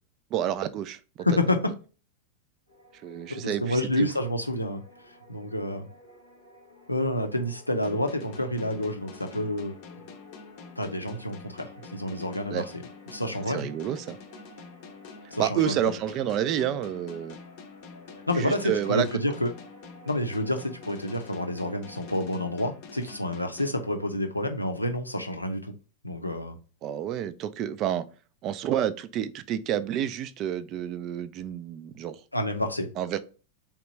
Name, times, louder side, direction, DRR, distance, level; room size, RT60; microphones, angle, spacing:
voice 1, 0.3-1.0 3.0-4.1 12.5-12.7 13.5-14.2 15.4-17.4 18.4-19.1 26.8-28.0 28.4-32.2 33.0-33.2, right 10 dB, 35° right, 0.4 m, -29 dB
voice 2, 1.2-1.7 3.3-4.8 5.3-5.9 6.9-9.7 10.8-13.7 15.3-15.9 18.3-19.5 20.1-25.7 26.0-26.6 32.3-32.9, left 1 dB, 85° left, 0.5 m, -29 dB
sound 1, 2.7-22.1, equal, 90° right, 1.8 m, -53 dB
sound 2, 7.8-24.4, left 5 dB, 45° left, 0.6 m, -47 dB
3.5 x 2.9 x 3.1 m
figure-of-eight pair, 90°, 0 cm